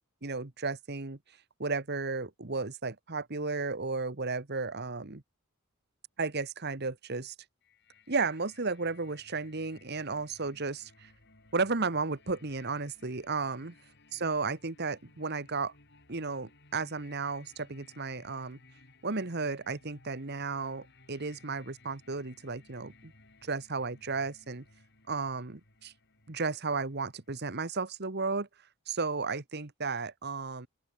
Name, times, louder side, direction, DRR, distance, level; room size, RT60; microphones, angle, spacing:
voice 1, 0.2-1.2 1.6-5.2 6.2-7.3 8.1-11.1 11.5-13.7 14.1-15.7 16.1-18.6 19.0-23.1 23.4-24.6 25.1-25.9 26.3-28.5 28.9-30.7, right 4 dB, 50° right, 1.5 m, -34 dB
sound 1, 7.6-27.4, left 3 dB, 50° left, 7.4 m, -60 dB
open air
head